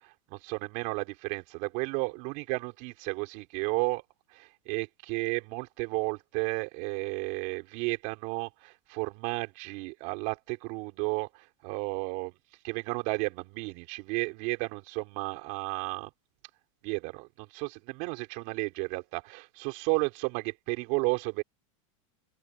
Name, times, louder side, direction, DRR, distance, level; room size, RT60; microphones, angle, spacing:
voice 1, 0.0-4.0 4.3-12.3 12.6-16.1 16.8-21.4, right 28 dB, 50° right, 4.4 m, -33 dB
open air
supercardioid pair, 155°, 18 cm